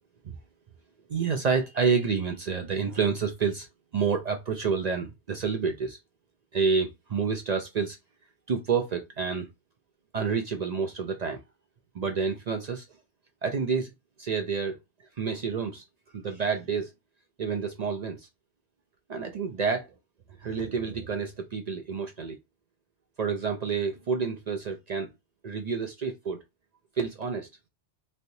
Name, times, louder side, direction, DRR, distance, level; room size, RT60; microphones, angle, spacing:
voice 1, 1.1-3.7 3.9-6.0 6.5-8.0 8.5-9.5 10.1-11.4 11.9-12.8 13.4-13.9 14.2-14.8 15.2-15.8 16.1-16.9 17.4-18.3 19.1-19.9 20.4-22.4 23.2-25.1 25.4-26.4 27.0-27.5, right 5 dB, 50° right, 0.5 m, -28 dB
3.3 x 2.8 x 2.6 m
omnidirectional pair, 1.1 m